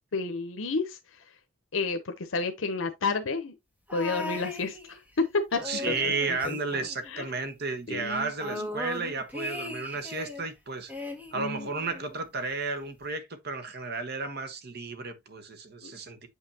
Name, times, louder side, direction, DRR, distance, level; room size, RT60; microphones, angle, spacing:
voice 1, 0.1-1.2 1.7-3.5 3.9-6.8 7.1-7.2 7.9-8.7 11.3-11.7 15.8-15.9, left 3 dB, 75° left, 0.8 m, -31 dB
sound 1, 3.9-5.2 5.5-7.4 7.7-7.8 8.1-10.5 10.9-12.1 13.0-13.1, left 2 dB, 10° right, 1.5 m, -38 dB
voice 2, 5.6-10.9 11.3-16.3, right 4 dB, 55° right, 1.3 m, -33 dB
8.0 x 5.6 x 2.8 m
head